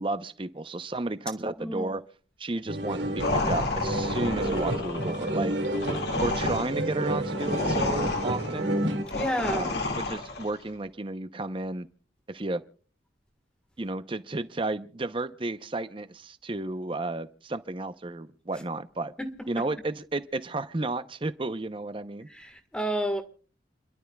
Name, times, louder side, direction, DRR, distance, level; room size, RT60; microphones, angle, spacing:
voice 1, 0.0-2.0 2.4-5.5 6.2-8.7 9.5-11.9 12.3-12.6 13.8-19.1 19.5-22.3, right 2 dB, 25° right, 0.7 m, -32 dB
voice 2, 1.6-1.9 9.1-9.8 19.2-19.3 19.6-19.7 22.3-23.2, equal, 5° left, 1.4 m, -30 dB
sound 1, 2.7-9.0, right 1 dB, 70° right, 2.2 m, -30 dB
sound 2, 3.2-10.6, left 2 dB, 55° left, 2.0 m, -31 dB
30.0 x 12.0 x 2.3 m
head